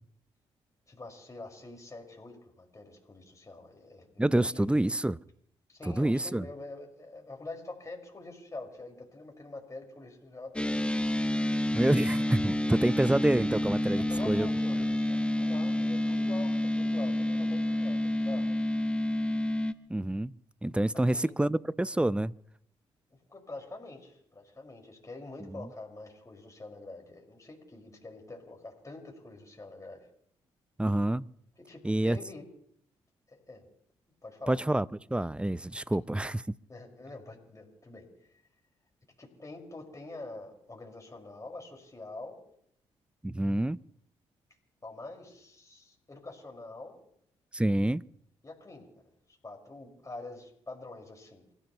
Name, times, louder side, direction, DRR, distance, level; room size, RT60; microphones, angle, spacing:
voice 1, 0.9-4.8 5.7-10.9 13.9-18.5 20.9-21.3 23.1-30.1 31.7-32.4 33.3-33.7 34.2-34.6 36.7-38.4 39.2-42.4 44.8-47.0 48.4-49.1 49.4-51.4, left 2 dB, 25° left, 5.1 m, -45 dB
voice 2, 4.2-5.2 5.9-6.5 11.7-14.5 19.9-20.3 20.6-22.3 25.5-25.7 30.8-31.3 31.8-32.2 34.5-36.4 43.2-43.8 47.5-48.0, right 1 dB, 10° right, 0.6 m, -27 dB
sound 1, 10.6-19.7, left 1 dB, 10° left, 1.0 m, -29 dB
29.0 x 15.5 x 3.0 m
hypercardioid pair, 45°, 13 cm